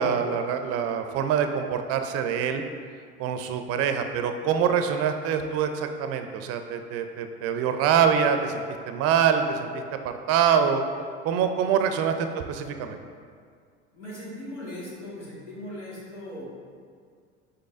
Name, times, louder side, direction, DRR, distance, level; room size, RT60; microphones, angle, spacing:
voice 1, 0.0-2.6 3.2-9.8 10.3-10.8 11.2-12.1 12.5-13.0, right 7 dB, 45° right, 7 dB, 0.4 m, -25 dB
voice 2, 13.9-16.6, left 1 dB, 90° left, -7 dB, 1.5 m, -39 dB
5.3 x 3.8 x 2.5 m, 2.1 s
hypercardioid pair, 75°, 34 cm